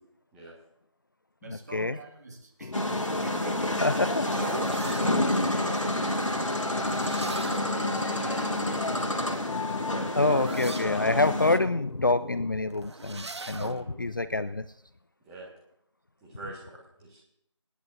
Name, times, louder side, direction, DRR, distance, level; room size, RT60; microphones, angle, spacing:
voice 1, 1.4-6.6 7.2-9.4, right 2 dB, 35° right, 1 dB, 2.0 m, -44 dB
sound 1, 2.6-12.5, left 3 dB, 70° left, 0.8 m, -39 dB
sound 2, 2.7-11.6, left 1 dB, 90° left, 1.8 m, -29 dB
sound 3, 3.6-5.2 6.6-7.8 9.2-10.9 12.7-13.8, right 3 dB, 60° right, 0.8 m, -39 dB
voice 2, 3.8-4.2 10.1-14.6, left 2 dB, 40° left, 13 dB, 0.4 m, -26 dB
voice 3, 13.6-14.0 15.3-15.5 16.2-17.2, right 2 dB, 5° right, -6 dB, 1.7 m, -45 dB
28.0 x 9.8 x 2.7 m, 0.78 s
figure-of-eight pair, 165°, 16 cm